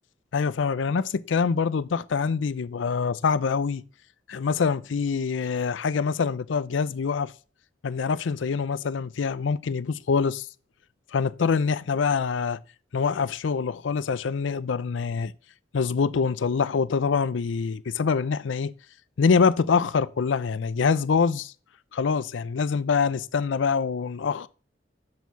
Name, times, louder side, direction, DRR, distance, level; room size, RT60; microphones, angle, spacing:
voice 1, 0.3-3.8 4.3-7.3 7.8-10.5 11.1-12.6 12.9-15.3 15.7-18.7 19.2-21.5 21.9-24.5, left 5 dB, 80° left, 0.5 m, -25 dB
10.5 x 4.5 x 6.9 m
head